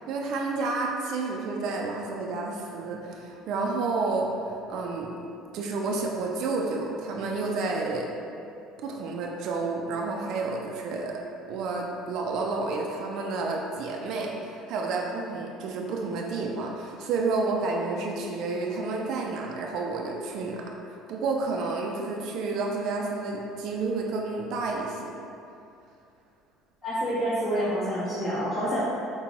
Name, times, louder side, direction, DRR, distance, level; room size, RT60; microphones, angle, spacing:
voice 1, 0.0-5.2 5.5-8.1 8.8-11.1 11.5-25.1, right 3 dB, 65° right, 0 dB, 0.4 m, -30 dB
voice 2, 26.8-28.8, equal, 30° left, -11 dB, 1.4 m, -27 dB
5.2 x 2.2 x 2.9 m, 2.6 s
supercardioid pair, 90°, 0 cm